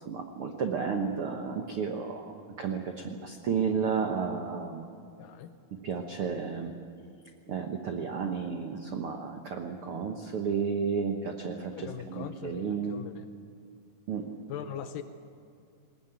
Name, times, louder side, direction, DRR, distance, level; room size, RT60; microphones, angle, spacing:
voice 1, 0.0-2.3 2.6-4.9 5.8-6.7 7.5-12.9 14.1-14.3, right 6 dB, 90° right, 4 dB, 1.2 m, -32 dB
voice 2, 5.1-5.6 11.7-13.3 14.5-15.0, left 9 dB, 75° left, 9 dB, 2.3 m, -40 dB
20.0 x 19.5 x 9.2 m, 2.4 s
omnidirectional pair, 4.4 m